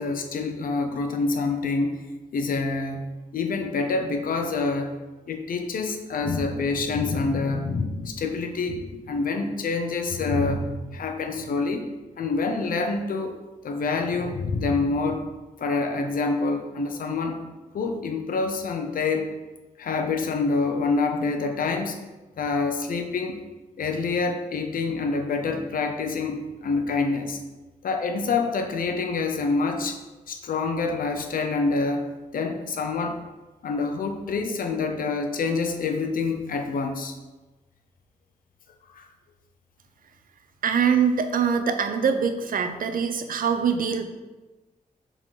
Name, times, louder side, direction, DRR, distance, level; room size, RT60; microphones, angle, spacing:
voice 1, 0.0-2.0 2.3-3.0 3.3-5.0 5.3-11.9 12.2-13.3 13.6-15.2 15.6-17.4 17.7-19.3 19.8-22.0 22.4-23.4 23.8-27.4 27.8-30.0 30.3-33.2 33.6-37.1 38.9-39.1, left 4 dB, 80° left, 5 dB, 0.8 m, -26 dB
voice 2, 40.6-44.0, right 6 dB, 80° right, 8 dB, 0.7 m, -23 dB
7.6 x 4.0 x 4.9 m, 1.2 s
cardioid pair, 85°, 14 cm